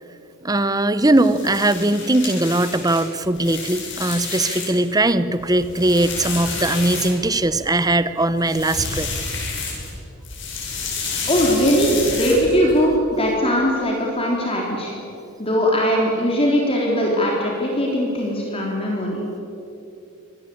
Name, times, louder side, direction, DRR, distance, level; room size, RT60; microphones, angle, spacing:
voice 1, 0.4-9.1, right 2 dB, 15° right, 13 dB, 0.9 m, -20 dB
sound 1, 1.1-4.9 5.3-7.6 8.3-10.0 10.2-12.8, left 4 dB, 55° left, 7.9 m, -30 dB
voice 2, 11.3-14.9 15.4-19.2, equal, 25° left, -2 dB, 3.7 m, -20 dB
25.5 x 19.5 x 8.6 m, 2.8 s
head